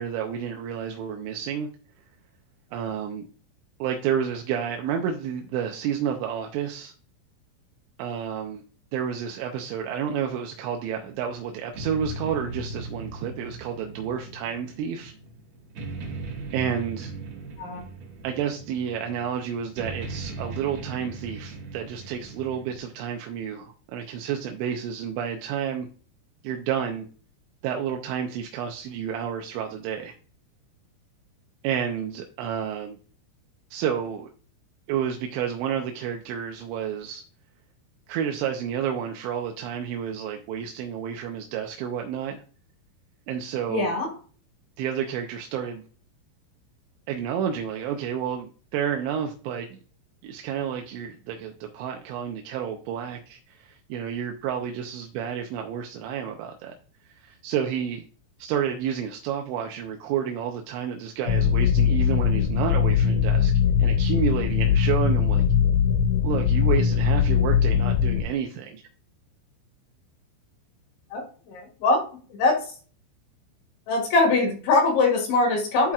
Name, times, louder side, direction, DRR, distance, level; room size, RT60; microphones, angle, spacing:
voice 1, 0.0-1.7 2.7-3.3 3.8-6.9 8.0-8.6 8.9-15.1 16.5-17.1 18.2-25.9 26.4-27.1 27.6-30.1 31.6-33.0 33.7-34.3 34.9-37.2 38.1-42.4 43.3-43.9 44.8-45.8 47.1-49.8 50.2-56.7 57.1-58.0 58.4-63.5 63.8-65.4 66.2-68.8, right 8 dB, 80° right, 3 dB, 2.7 m, -30 dB
sound 1, 10.9-22.8, right 3 dB, 55° right, 3.8 m, -38 dB
voice 2, 43.7-44.1 71.1-71.2 71.5-72.0 72.3-72.6 73.9-75.9, left 3 dB, 70° left, 0 dB, 4.2 m, -22 dB
sound 2, 61.3-68.2, left 7 dB, 85° left, 2.5 m, -21 dB
12.0 x 4.3 x 2.4 m, 0.40 s
omnidirectional pair, 5.8 m